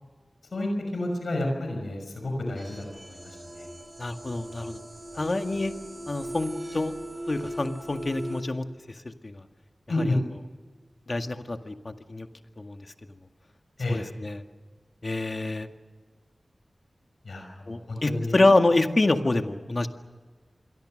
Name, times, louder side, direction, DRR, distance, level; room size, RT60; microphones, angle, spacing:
voice 1, 0.5-3.7 9.9-10.2 13.8-14.0 17.2-18.4, left 1 dB, 85° left, 2 dB, 5.8 m, -30 dB
sound 1, 2.5-8.4, right 1 dB, 20° right, 8.0 m, -39 dB
voice 2, 4.0-4.8 5.1-5.7 6.1-6.9 7.3-8.6 9.0-9.4 10.0-10.2 11.1-12.3 12.6-12.8 13.9-14.4 15.0-15.7 17.7-19.9, left 2 dB, 50° left, 6 dB, 1.9 m, -26 dB
27.0 x 23.0 x 6.6 m, 1.4 s
wide cardioid pair, 60°, 0 cm